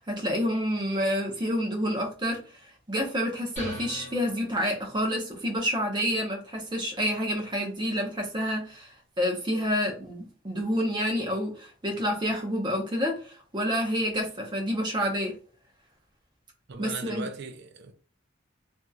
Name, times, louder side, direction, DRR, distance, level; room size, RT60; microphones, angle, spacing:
voice 1, 0.0-2.4 2.9-15.3 16.8-17.2, equal, 20° right, 0.8 m, -28 dB
sound 1, 3.6-5.2, equal, 35° left, 1.3 m, -41 dB
voice 2, 16.7-17.9, right 3 dB, 55° right, 0.5 m, -38 dB
2.9 x 2.6 x 2.3 m
head